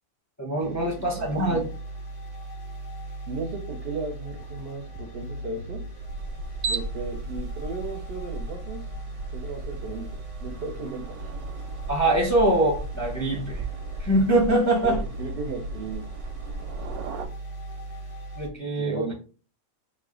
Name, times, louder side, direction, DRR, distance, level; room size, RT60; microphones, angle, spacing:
voice 1, 0.4-1.7 11.9-13.6 14.0-15.0 18.3-19.0, right 1 dB, 15° left, -1 dB, 0.6 m, -23 dB
sound 1, 0.6-18.5, right 2 dB, 40° left, 1.5 m, -38 dB
voice 2, 1.0-1.6 3.3-5.8 6.7-8.8 9.3-10.1 10.4-11.3 14.8-16.0 18.7-19.1, right 3 dB, 60° right, 1 dB, 0.6 m, -35 dB
sound 2, 5.7-17.3, right 3 dB, 90° right, 1.1 m, -37 dB
3.2 x 2.4 x 3.6 m, 0.36 s
omnidirectional pair, 1.5 m